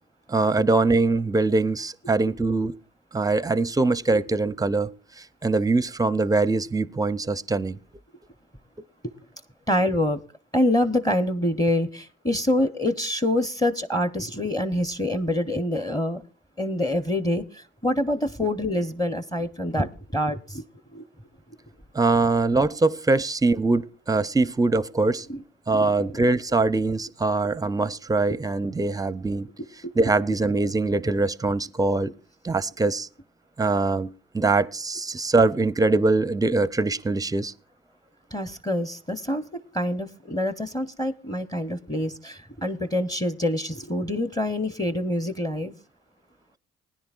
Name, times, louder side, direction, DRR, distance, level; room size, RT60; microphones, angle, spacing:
voice 1, 0.3-2.8 3.1-7.8 21.9-25.3 25.7-29.5 30.0-32.1 32.4-33.1 33.6-37.5, right 3 dB, 10° right, 0.5 m, -23 dB
voice 2, 9.7-10.2 10.5-16.2 16.6-20.6 20.9-21.0 25.3-25.4 25.8-25.9 29.8-29.9 38.3-39.4 39.7-45.7, left 1 dB, 10° left, 0.9 m, -26 dB
20.0 x 10.0 x 2.4 m
hypercardioid pair, 50°, 30 cm